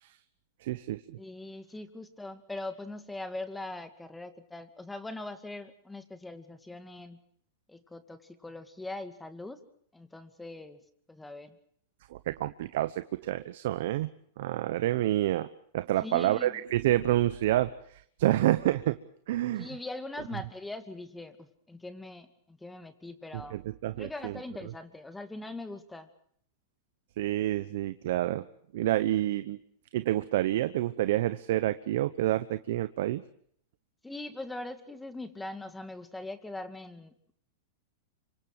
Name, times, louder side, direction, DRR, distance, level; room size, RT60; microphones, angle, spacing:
voice 1, 0.6-1.0 12.1-14.1 14.4-15.5 15.7-17.7 18.2-19.0 19.3-19.7 23.5-24.3 27.2-28.4 28.7-29.6 29.9-33.2, right 14 dB, 65° right, 12 dB, 1.0 m, -28 dB
voice 2, 1.2-7.2 7.7-9.6 9.9-10.8 11.1-11.6 16.0-16.6 19.6-23.6 24.0-26.1 34.0-37.3, left 2 dB, 5° left, 10 dB, 2.3 m, -41 dB
27.0 x 25.0 x 4.8 m, 0.64 s
hypercardioid pair, 130°, 0 cm